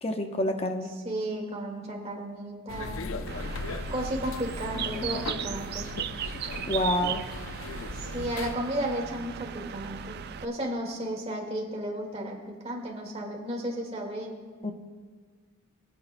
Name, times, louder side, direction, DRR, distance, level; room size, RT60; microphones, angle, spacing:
voice 1, 0.0-0.9 6.7-7.2 14.6-14.7, left 1 dB, 30° left, 5 dB, 0.8 m, -27 dB
voice 2, 0.9-3.0 3.9-5.9 8.0-14.4, right 1 dB, 30° right, 0 dB, 1.9 m, -34 dB
sound 1, 2.7-8.6, left 3 dB, 75° left, 0.6 m, -37 dB
Bird, 3.3-10.5, right 8 dB, 50° right, 0.4 m, -37 dB
22.5 x 9.4 x 2.2 m, 1.5 s
head